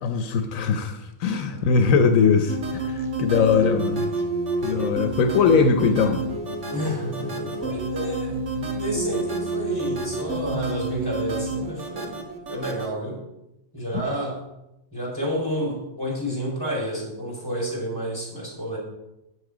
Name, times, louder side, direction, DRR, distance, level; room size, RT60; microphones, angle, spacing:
voice 1, 0.0-4.1 4.6-6.2 8.6-8.7 10.5-10.6 14.1-14.2, left 5 dB, 80° left, 7 dB, 1.2 m, -21 dB
sound 1, 2.5-12.9, right 2 dB, 65° right, 1.6 m, -29 dB
voice 2, 6.7-8.4 8.7-12.2 12.5-13.2 13.7-14.4 14.9-18.8, equal, 15° left, -4 dB, 4.1 m, -30 dB
9.7 x 7.8 x 5.0 m, 0.89 s
omnidirectional pair, 1.4 m